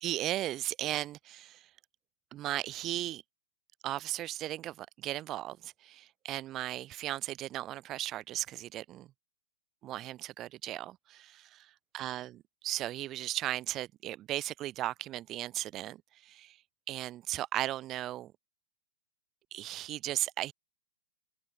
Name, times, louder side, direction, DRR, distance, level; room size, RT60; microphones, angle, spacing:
voice 1, 0.0-1.7 2.3-3.2 3.8-9.1 9.8-11.5 11.9-16.6 16.9-18.3 19.5-20.5, right 14 dB, 20° right, 0.5 m, -36 dB
hypercardioid pair, 170°, 0 cm